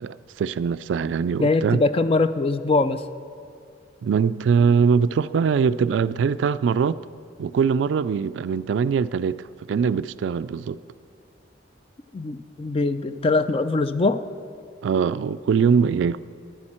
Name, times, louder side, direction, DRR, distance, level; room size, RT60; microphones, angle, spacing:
voice 1, 0.0-1.8 4.0-7.0 7.4-9.4 9.7-10.8 14.8-16.2, right 6 dB, 75° right, 0.3 m, -22 dB
voice 2, 1.4-3.0 12.1-14.2, left 3 dB, 30° left, 0.4 m, -22 dB
14.5 x 10.5 x 4.3 m
head